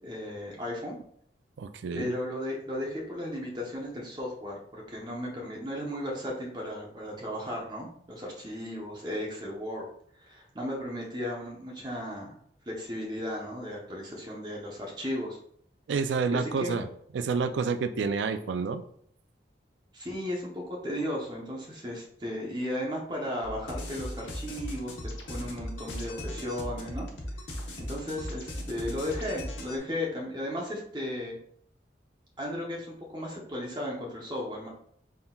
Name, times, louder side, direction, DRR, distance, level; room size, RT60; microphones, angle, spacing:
voice 1, 0.0-1.0 1.9-9.8 10.2-12.3 12.7-15.4 16.3-16.8 19.9-27.1 27.8-31.4 32.4-34.7, left 1 dB, 25° right, -2 dB, 0.8 m, -35 dB
voice 2, 1.6-2.1 15.9-16.9 17.1-18.8, right 5 dB, 80° right, 11 dB, 0.3 m, -29 dB
sound 1, 23.4-29.8, left 1 dB, 85° left, 0.9 m, -38 dB
4.0 x 3.8 x 2.3 m, 0.66 s
head